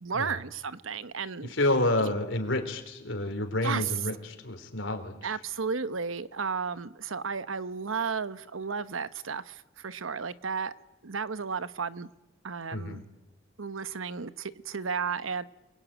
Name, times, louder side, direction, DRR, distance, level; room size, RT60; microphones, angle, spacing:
voice 1, 0.0-1.5 2.0-2.1 3.6-3.9 5.2-10.7 11.0-12.1 12.4-13.0 13.6-15.4, right 5 dB, 85° right, 1.0 m, -33 dB
voice 2, 1.4-5.2 12.7-13.0, left 1 dB, 70° left, 3.9 m, -29 dB
29.5 x 22.0 x 9.0 m
head